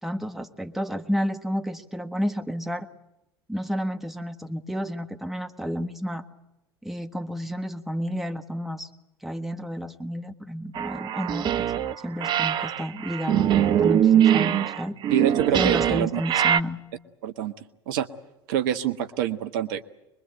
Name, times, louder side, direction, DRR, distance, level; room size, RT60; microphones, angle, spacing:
voice 1, 0.0-2.9 3.5-6.2 6.8-8.9 9.2-11.7 12.0-15.0 15.5-16.8, equal, ahead, 6 dB, 1.5 m, -31 dB
sound 1, 10.8-11.9 12.2-16.6, right 10 dB, 35° right, 0.9 m, -22 dB
voice 2, 15.1-16.2 17.2-17.5 17.9-18.1 18.5-19.8, right 10 dB, 55° right, 10 dB, 1.2 m, -26 dB
23.5 x 22.5 x 8.1 m, 0.88 s
figure-of-eight pair, 75°, 13 cm